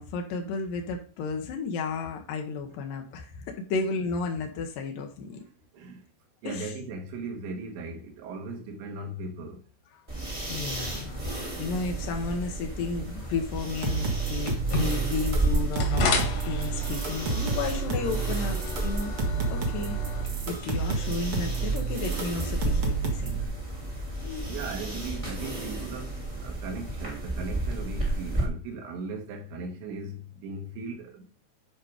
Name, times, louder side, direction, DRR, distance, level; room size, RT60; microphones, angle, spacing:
voice 1, 0.0-5.4 6.4-6.7 10.5-11.3 11.6-16.1 16.5-19.1 19.5-20.0 20.5-23.4 24.2-24.5, left 4 dB, 75° left, 2.0 m, -33 dB
voice 2, 5.4-6.0 6.4-9.6 19.5-19.6 24.5-31.3, right 3 dB, 75° right, 4.0 m, -38 dB
sound 1, 10.1-28.4, right 2 dB, 20° right, 0.9 m, -33 dB
sound 2, 13.7-23.4, right 5 dB, 60° right, 1.4 m, -30 dB
sound 3, 14.4-22.3, left 4 dB, 50° left, 2.1 m, -35 dB
10.5 x 5.2 x 4.9 m
omnidirectional pair, 5.4 m